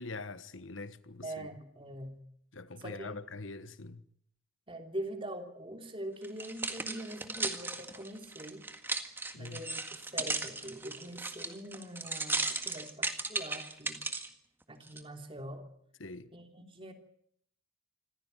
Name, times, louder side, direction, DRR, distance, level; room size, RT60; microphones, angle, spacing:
voice 1, 0.0-1.5 2.5-4.0 9.3-9.6 16.0-16.3, left 3 dB, 70° left, 1.3 m, -43 dB
voice 2, 1.2-2.2 2.8-3.1 4.7-8.7 9.3-14.0 14.7-15.7 16.3-16.9, right 1 dB, 25° right, 2.9 m, -43 dB
sound 1, 6.2-14.3 14.9-15.0, right 3 dB, 10° right, 1.8 m, -36 dB
26.0 x 15.5 x 9.3 m
head